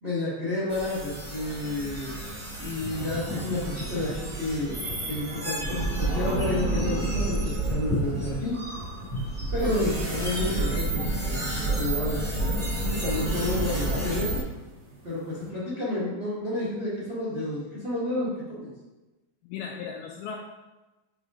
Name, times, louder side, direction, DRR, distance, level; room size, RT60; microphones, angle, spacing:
voice 1, 0.0-2.1 2.6-7.4 7.6-8.5 9.5-12.2 12.9-14.4 15.0-18.7, left 2 dB, 35° right, -8 dB, 0.8 m, -30 dB
sound 1, 0.7-14.4, right 2 dB, 15° left, 1.0 m, -30 dB
sound 2, 2.4-15.5, equal, 60° right, 1.3 m, -39 dB
voice 2, 19.4-20.4, left 6 dB, 80° left, 0 dB, 2.3 m, -37 dB
6.4 x 3.6 x 4.9 m, 1.1 s
omnidirectional pair, 4.5 m